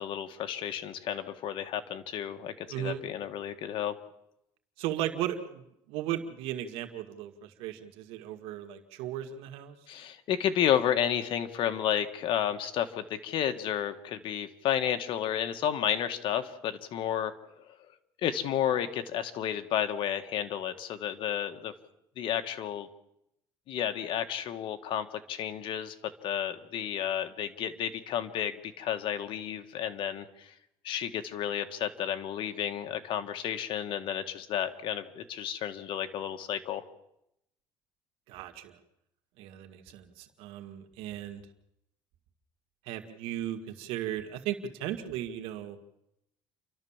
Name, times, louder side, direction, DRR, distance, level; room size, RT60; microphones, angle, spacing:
voice 1, 0.0-3.9 9.9-17.3 17.7-17.8 18.2-21.7 22.2-22.9 23.7-25.9 26.2-30.5 30.8-36.8, left 10 dB, 65° left, 8 dB, 1.7 m, -31 dB
voice 2, 2.7-3.0 4.8-9.8 38.3-38.8 39.4-41.4 42.9-45.8, right 11 dB, 90° right, 6 dB, 1.9 m, -36 dB
29.5 x 12.5 x 7.3 m, 0.82 s
cardioid pair, 125°, 9 cm